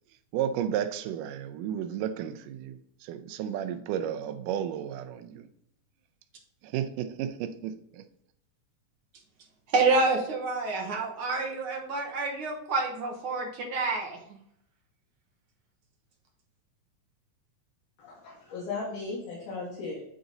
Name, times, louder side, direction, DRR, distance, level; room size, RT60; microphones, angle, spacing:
voice 1, 0.3-5.5 6.6-8.0, right 9 dB, 90° right, 2.2 m, -33 dB
voice 2, 9.7-14.2, right 3 dB, 55° right, 1.6 m, -28 dB
voice 3, 18.0-20.0, left 3 dB, 75° left, 3.1 m, -36 dB
9.1 x 3.9 x 3.9 m
omnidirectional pair, 3.7 m